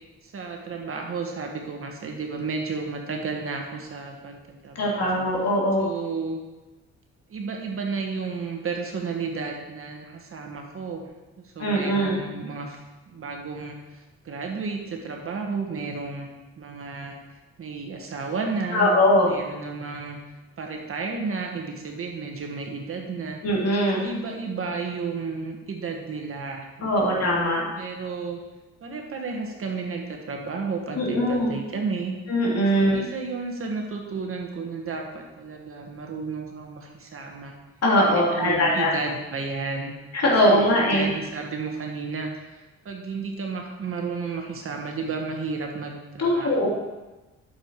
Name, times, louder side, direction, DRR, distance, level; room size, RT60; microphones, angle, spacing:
voice 1, 0.2-5.3 5.8-6.4 7.3-11.1 11.4-12.8 13.1-16.3 16.6-17.2 17.6-18.9 19.2-20.2 20.6-23.4 23.9-27.3 27.8-28.4 28.8-32.1 32.7-37.5 38.0-39.9 40.4-46.7, right 4 dB, 45° right, 2 dB, 1.7 m, -32 dB
voice 2, 4.7-5.9 11.6-12.2 18.7-19.4 23.4-24.0 26.8-27.6 30.9-31.5 32.3-33.0 37.8-38.9 40.1-41.1 46.2-46.7, equal, 55° left, -4 dB, 3.3 m, -21 dB
8.8 x 6.9 x 4.8 m, 1.1 s
cardioid pair, 90°, 30 cm